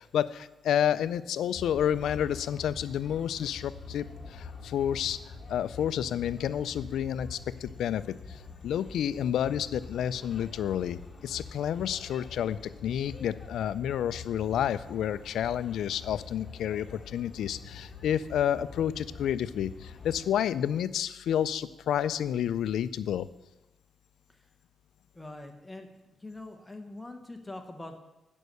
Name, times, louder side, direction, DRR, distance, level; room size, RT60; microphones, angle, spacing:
voice 1, 0.0-23.3, left 9 dB, 85° left, 15 dB, 0.4 m, -30 dB
sound 1, 1.5-20.3, left 4 dB, 35° left, 1.5 m, -45 dB
voice 2, 25.1-25.9 26.2-28.0, left 2 dB, 5° left, 4 dB, 1.0 m, -43 dB
11.0 x 5.4 x 6.8 m, 1.0 s
wide cardioid pair, 160°, 0 cm